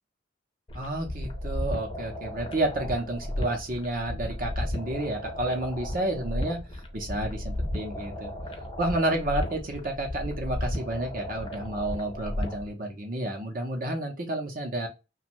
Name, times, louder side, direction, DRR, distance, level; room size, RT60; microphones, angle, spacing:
sound 1, 0.7-12.7, left 1 dB, 25° left, 0.5 m, -34 dB
voice 1, 0.7-8.3 8.8-14.9, right 1 dB, 45° right, 1 dB, 0.7 m, -30 dB
2.6 x 2.2 x 2.9 m, 0.27 s
head